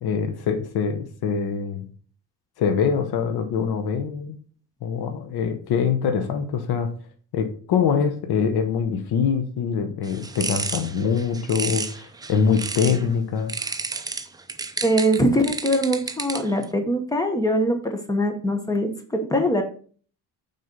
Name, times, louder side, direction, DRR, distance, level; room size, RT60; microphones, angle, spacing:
voice 1, 0.0-1.9 2.6-4.4 4.8-6.9 7.3-13.5, left 6 dB, 70° left, 7 dB, 1.0 m, -24 dB
sound 1, 10.0-13.1 13.5-16.6, right 4 dB, 10° right, 0.3 m, -31 dB
voice 2, 14.8-19.6, equal, 10° left, 6 dB, 1.0 m, -22 dB
6.5 x 4.3 x 5.2 m, 0.43 s
cardioid pair, 165°, 39 cm